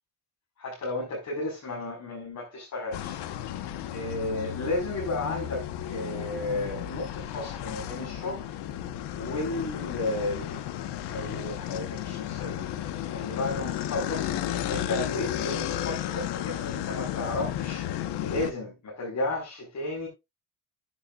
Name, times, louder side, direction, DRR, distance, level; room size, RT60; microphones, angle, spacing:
voice 1, 0.6-3.6 3.9-8.4 9.1-10.6 11.1-12.6 13.1-20.1, left 2 dB, 45° left, 5.2 m, -33 dB
sound 1, 2.9-18.5, left 11 dB, 85° left, 1.4 m, -33 dB
14.0 x 7.9 x 2.5 m
cardioid pair, 120°, 40 cm